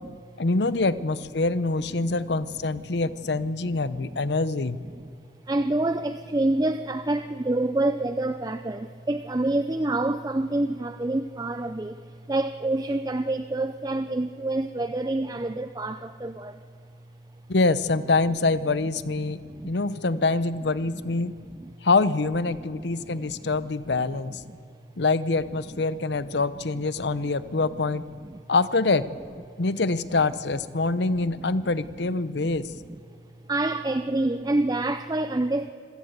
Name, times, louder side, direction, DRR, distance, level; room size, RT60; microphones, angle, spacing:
voice 1, 0.4-4.8 17.5-21.3 21.8-24.4 25.0-28.0 28.5-29.1 29.6-32.7, left 3 dB, 70° left, 15 dB, 0.8 m, -25 dB
voice 2, 5.5-16.6 19.2-19.7 21.6-21.7 22.6-22.7 23.2-23.5 24.5-24.6 27.2-27.6 28.2-28.4 32.4-32.5 32.9-33.0 33.5-35.7, right 2 dB, 20° right, 10 dB, 0.5 m, -27 dB
26.0 x 16.5 x 8.1 m, 2.6 s
head